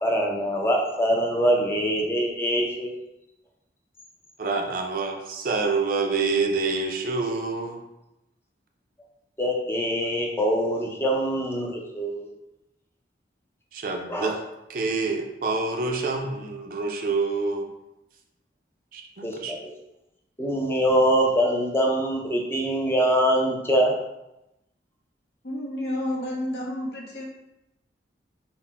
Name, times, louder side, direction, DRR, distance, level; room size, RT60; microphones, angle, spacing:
voice 1, 0.0-2.9 9.4-12.3 14.1-14.4 19.2-19.6 20.4-23.9, equal, 15° left, -1 dB, 0.5 m, -23 dB
voice 2, 4.4-7.8 13.7-14.4 14.7-17.7 18.9-19.5, right 4 dB, 50° right, 2 dB, 0.5 m, -27 dB
voice 3, 25.4-27.3, left 1 dB, 65° left, -2 dB, 0.9 m, -30 dB
4.0 x 2.1 x 4.1 m, 0.90 s
head